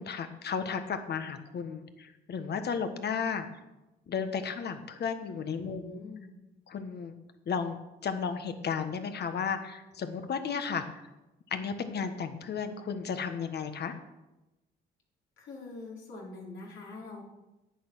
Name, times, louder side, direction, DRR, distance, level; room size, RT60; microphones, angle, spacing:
voice 1, 0.0-3.5 4.1-6.0 6.7-7.1 7.5-11.0 11.5-14.0, left 6 dB, 55° left, 8 dB, 1.4 m, -34 dB
voice 2, 5.4-6.3 15.4-17.2, left 2 dB, 75° left, -3 dB, 4.2 m, -44 dB
10.0 x 9.0 x 6.3 m, 0.99 s
cardioid pair, 90°, 20 cm